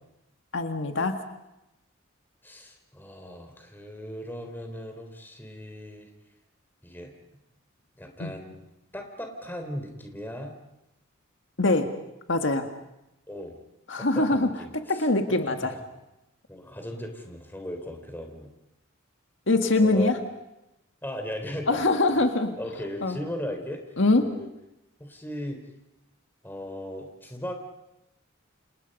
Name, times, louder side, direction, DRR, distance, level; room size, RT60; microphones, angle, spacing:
voice 1, 0.5-1.2 8.2-8.3 11.6-11.9 12.3-12.7 13.9-15.7 19.5-20.2 21.7-22.6 23.0-23.2 24.0-24.3, left 2 dB, 65° left, 6 dB, 1.9 m, -23 dB
voice 2, 2.4-6.1 6.8-7.1 8.0-8.7 8.9-10.5 13.3-13.6 14.0-15.1 15.5-15.8 16.5-18.5 19.8-20.2 21.0-21.8 22.6-23.8 24.2-24.5 25.0-25.7 26.4-27.5, equal, 10° left, 4 dB, 3.7 m, -37 dB
29.5 x 27.0 x 5.5 m, 0.91 s
head